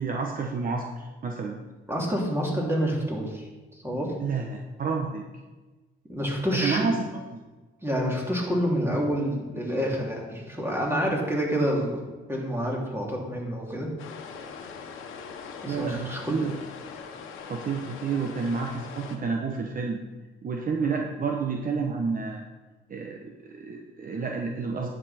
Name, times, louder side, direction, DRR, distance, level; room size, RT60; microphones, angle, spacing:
voice 1, 0.0-1.6 4.2-5.2 6.5-7.0 7.3-7.4 15.7-16.5 17.4-20.0 20.4-22.4 22.9-24.9, right 5 dB, 45° right, 2 dB, 1.1 m, -30 dB
voice 2, 1.9-4.1 6.1-6.9 7.8-13.9 15.6-16.4, equal, 10° right, -2 dB, 2.9 m, -28 dB
big-beach-rocks-break, 14.0-19.2, left 5 dB, 90° left, 1.2 m, -41 dB
10.5 x 7.9 x 4.3 m, 1.2 s
cardioid pair, 90°, 20 cm